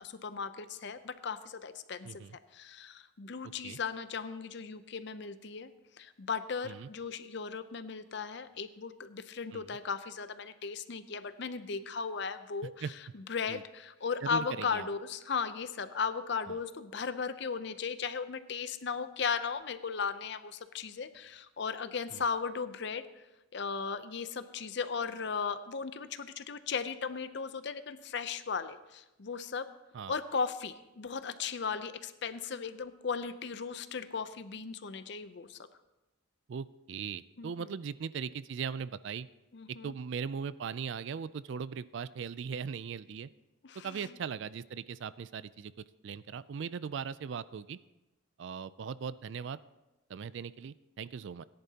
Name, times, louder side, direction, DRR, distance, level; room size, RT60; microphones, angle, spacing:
voice 1, 0.0-2.2 2.5-5.7 6.0-23.2 23.5-29.7 30.1-35.6 37.4-37.7 39.5-40.0 43.6-44.1, left 5 dB, 55° left, 12 dB, 0.6 m, -36 dB
voice 2, 2.0-2.4 3.6-3.8 6.6-6.9 9.5-9.8 12.6-12.9 13.5-13.6 14.2-14.9 16.5-16.6 22.1-22.2 29.9-30.2 36.5-39.3 39.8-43.3 43.8-45.7 46.0-47.8 48.4-49.6 50.1-51.4, right 6 dB, 60° right, 17 dB, 0.3 m, -39 dB
17.5 x 10.5 x 2.8 m, 1.0 s
head